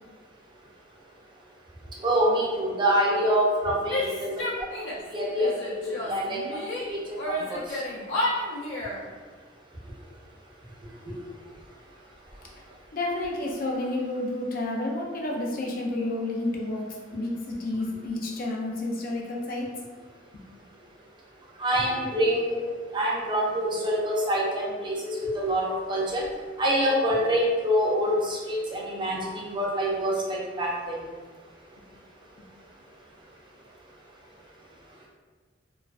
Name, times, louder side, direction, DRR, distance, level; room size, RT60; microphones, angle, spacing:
voice 1, 2.0-4.7 5.1-5.5 5.8-6.6 6.9-7.8 21.6-26.2 26.6-31.0, equal, 25° right, -4 dB, 0.5 m, -26 dB
Female speech woman speaking / Yell, 3.9-5.1 5.4-6.8 7.2-9.0, left 1 dB, 80° left, 0.7 m, -31 dB
voice 2, 12.9-16.9 17.1-19.7, left 2 dB, 50° left, -1 dB, 0.5 m, -30 dB
2.3 x 2.3 x 2.3 m, 1.4 s
head